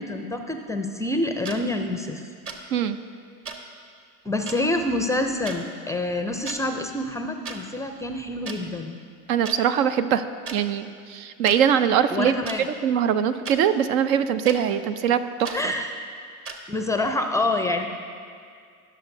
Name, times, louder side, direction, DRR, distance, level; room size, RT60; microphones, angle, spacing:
voice 1, 0.0-2.3 4.2-9.0 12.1-12.7 15.5-15.9 16.7-17.9, left 2 dB, 10° left, 5 dB, 0.4 m, -27 dB
sound 1, 1.4-1.6 2.5-2.6 3.4-3.6 4.5-4.6 5.4-5.6 6.3-6.6 7.4-7.6 8.5-8.6 9.4-9.6 10.5-10.6 11.4-11.6 12.4-12.6 13.4-13.6 14.4-14.6 15.4-15.6 16.4-16.6, right 5 dB, 30° right, 1.1 m, -35 dB
voice 2, 9.3-10.2 10.5-12.3 12.8-15.6, right 8 dB, 75° right, 11 dB, 0.7 m, -22 dB
19.5 x 6.6 x 2.7 m, 2.2 s
hypercardioid pair, 100°, 42 cm